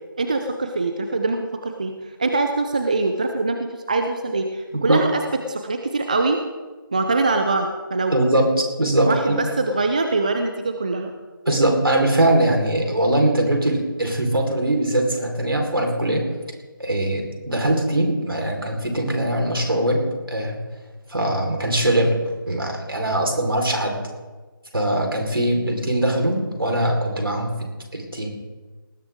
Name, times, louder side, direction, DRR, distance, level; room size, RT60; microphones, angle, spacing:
voice 1, 0.2-1.9 2.2-5.2 5.5-6.4 6.9-8.2 9.0-11.1, right 3 dB, 20° right, 6 dB, 0.5 m, -23 dB
voice 2, 4.7-5.1 8.1-9.5 11.5-16.3 16.8-20.0 20.3-20.6 21.1-22.1 22.5-24.0 24.7-28.3, right 1 dB, 75° right, 2 dB, 4.3 m, -21 dB
19.0 x 13.0 x 3.7 m, 1.3 s
figure-of-eight pair, 165°, 12 cm